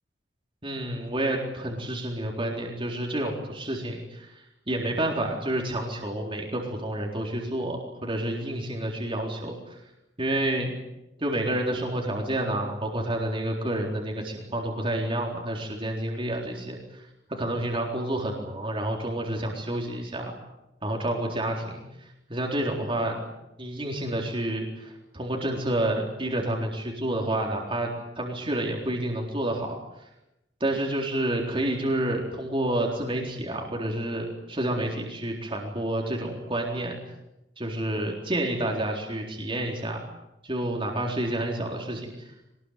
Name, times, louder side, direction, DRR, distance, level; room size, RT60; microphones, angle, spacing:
voice 1, 0.6-9.8 10.2-10.7 11.2-17.0 17.3-20.4 20.8-23.3 23.6-27.9 28.2-29.7 30.6-37.0 37.6-40.0 40.4-42.1, right 1 dB, 30° right, 0 dB, 4.0 m, -29 dB
23.0 x 20.0 x 9.4 m, 0.91 s
head